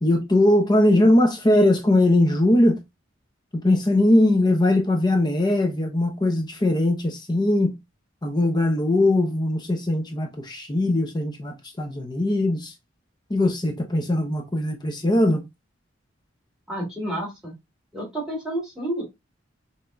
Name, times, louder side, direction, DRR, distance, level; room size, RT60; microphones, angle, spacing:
voice 1, 0.0-2.8 3.5-7.7 8.2-12.7 13.3-15.4, left 1 dB, 20° left, 0.7 m, -20 dB
voice 2, 16.7-17.5 17.9-19.0, right 1 dB, 5° right, 3.1 m, -30 dB
5.7 x 3.6 x 2.6 m
head